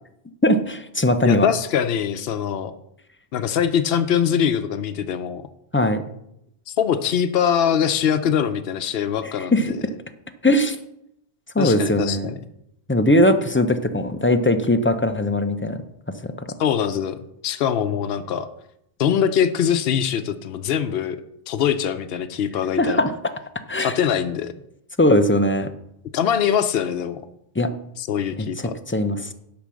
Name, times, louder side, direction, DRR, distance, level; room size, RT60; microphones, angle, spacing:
voice 1, 0.4-1.5 5.7-6.0 9.5-9.7 10.4-10.8 11.5-12.3 12.9-15.8 16.2-16.3 22.8-23.1 23.7-23.9 25.0-25.7 27.6-27.7 28.4-28.5 28.9-29.3, left 1 dB, 15° left, 8 dB, 0.5 m, -19 dB
voice 2, 1.2-2.7 3.3-5.4 6.7-9.8 11.6-12.4 16.6-17.2 17.4-18.5 19.0-21.2 21.5-23.0 23.8-24.5 26.1-27.2 28.0-28.7, left 8 dB, 75° left, 8 dB, 0.9 m, -23 dB
10.5 x 5.8 x 6.3 m, 0.77 s
omnidirectional pair, 1.0 m